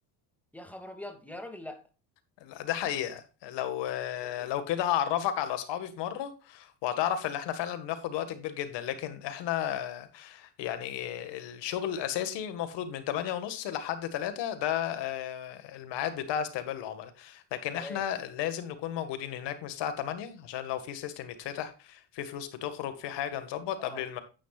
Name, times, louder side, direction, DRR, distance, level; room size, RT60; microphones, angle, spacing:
voice 1, 0.5-1.8 4.1-4.5 17.7-18.0 23.8-24.2, left 1 dB, 5° left, 2.5 m, -43 dB
voice 2, 2.4-24.2, left 10 dB, 70° left, 1.9 m, -33 dB
9.9 x 9.3 x 2.5 m
supercardioid pair, 80°, 43 cm